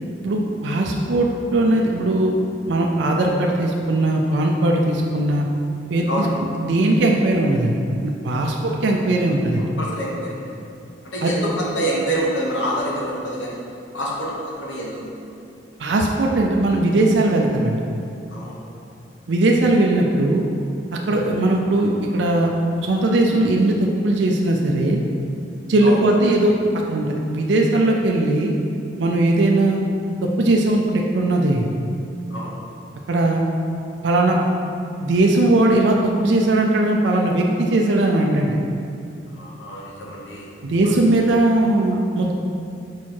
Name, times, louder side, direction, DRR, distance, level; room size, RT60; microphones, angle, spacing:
voice 1, 0.2-2.3 2.7-5.5 5.9-6.3 6.6-7.8 8.0-9.7 11.2-11.4 15.8-17.8 19.3-20.4 21.1-22.5 22.8-25.0 25.7-26.5 26.9-28.6 29.0-29.8 30.2-31.7 33.1-33.4 34.0-34.4 35.0-38.6 40.6-42.3, right 2 dB, 70° right, 0 dB, 0.5 m, -19 dB
voice 2, 9.6-10.4 11.1-13.6 13.9-15.2 18.3-18.6 25.8-26.0 32.3-32.5 39.3-40.5, right 1 dB, 90° left, -4 dB, 1.2 m, -26 dB
4.7 x 4.6 x 4.3 m, 2.5 s
head